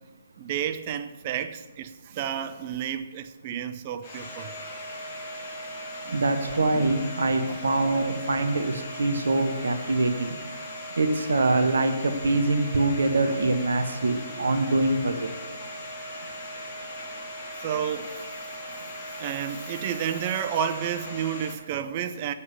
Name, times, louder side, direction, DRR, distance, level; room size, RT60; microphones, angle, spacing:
voice 1, 0.4-4.5 6.1-6.2 6.8-7.0 7.5-7.6 14.4-14.6 17.0-17.1 17.6-18.4 18.7-22.3, right 9 dB, 30° right, 0.6 m, -31 dB
Domestic sounds home sounds, 4.0-21.5, equal, 20° left, 2.4 m, -38 dB
voice 2, 6.1-10.3 11.0-15.3, right 2 dB, 60° right, 0.9 m, -24 dB
8.3 x 6.9 x 7.2 m
figure-of-eight pair, 130°, 0 cm